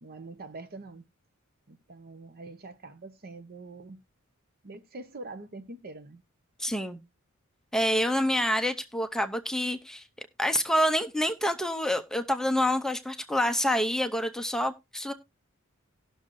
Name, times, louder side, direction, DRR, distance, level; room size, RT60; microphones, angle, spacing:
voice 1, 0.0-1.1 1.7-4.0 4.6-6.2, right 2 dB, 45° right, 0.8 m, -44 dB
voice 2, 6.6-7.0 7.7-10.0 10.4-15.1, equal, 5° left, 0.6 m, -27 dB
18.5 x 6.3 x 2.6 m
head